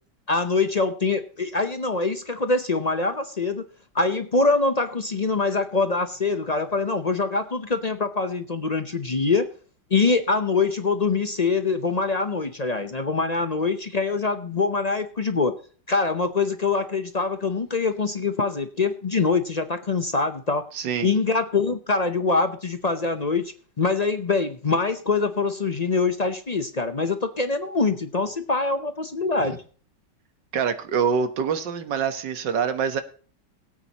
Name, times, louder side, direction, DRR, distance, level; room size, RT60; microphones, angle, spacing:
voice 1, 0.3-3.6 3.9-9.5 9.9-15.5 15.9-20.6 21.0-29.6, left 4 dB, 45° left, 9 dB, 0.5 m, -24 dB
voice 2, 20.7-21.1 30.5-33.0, right 6 dB, 85° right, 9 dB, 1.9 m, -25 dB
21.0 x 8.7 x 2.9 m, 0.42 s
omnidirectional pair, 1.9 m